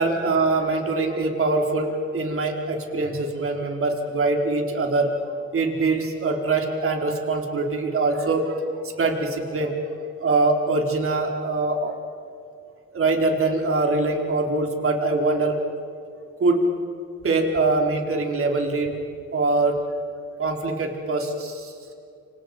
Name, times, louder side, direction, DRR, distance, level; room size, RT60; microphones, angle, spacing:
voice 1, 0.0-9.9 10.2-11.9 12.9-15.6 16.4-16.6 17.2-18.9 19.3-19.7 20.4-21.7, right 3 dB, 45° right, 2 dB, 4.6 m, -23 dB
29.0 x 27.0 x 5.3 m, 2.5 s
cardioid pair, 90°, 30 cm